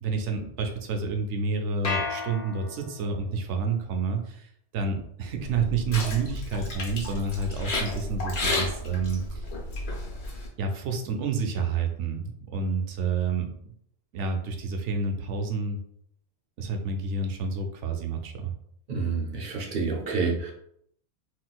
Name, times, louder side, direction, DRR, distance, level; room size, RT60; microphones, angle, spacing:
voice 1, 0.0-4.5 4.7-9.4 10.6-13.5 14.1-15.8 16.6-18.5, right 4 dB, 90° right, 4 dB, 0.9 m, -29 dB
sound 1, 1.8-3.2, left 4 dB, 45° left, 0.5 m, -32 dB
sound 2, 5.4-10.5, left 2 dB, 65° left, 1.1 m, -32 dB
voice 2, 18.9-20.5, right 4 dB, 55° right, 0 dB, 0.7 m, -28 dB
3.8 x 2.3 x 2.3 m, 0.70 s
omnidirectional pair, 1.2 m